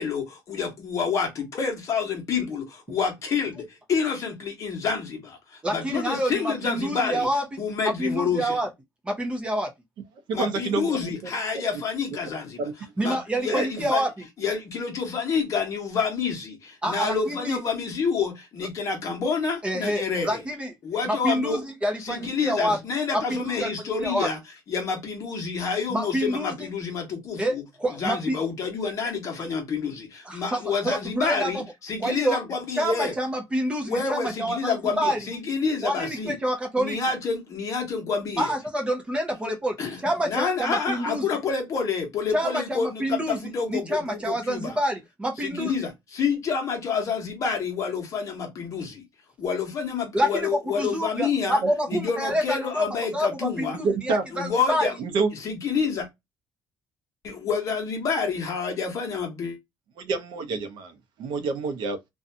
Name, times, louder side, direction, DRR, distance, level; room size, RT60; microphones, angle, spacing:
voice 1, 0.0-7.3 7.6-8.6 10.3-12.6 13.0-14.0 14.4-20.4 20.8-21.6 22.0-24.4 24.7-27.6 28.0-33.1 33.9-36.4 36.8-38.5 39.8-40.0 40.3-44.7 45.4-49.0 49.4-51.6 51.9-53.8 54.3-54.9 55.3-56.1 57.2-59.6, left 5 dB, 40° left, 1.0 m, -28 dB
voice 2, 5.6-7.6 7.8-8.7 9.0-9.7 13.0-14.3 16.8-17.6 19.6-20.7 21.0-22.8 23.1-23.7 24.0-24.3 25.9-26.7 27.4-28.4 30.2-31.6 32.0-32.4 32.7-35.2 35.8-37.0 38.4-41.3 42.3-43.4 43.7-45.8 50.1-52.9 53.1-54.9, right 1 dB, 15° right, 0.6 m, -27 dB
voice 3, 10.3-11.0 12.6-12.7 13.5-13.6 53.8-54.2 55.0-55.3 60.0-62.1, right 4 dB, 65° right, 0.6 m, -27 dB
2.6 x 2.2 x 2.5 m
cardioid pair, 170°, 8 cm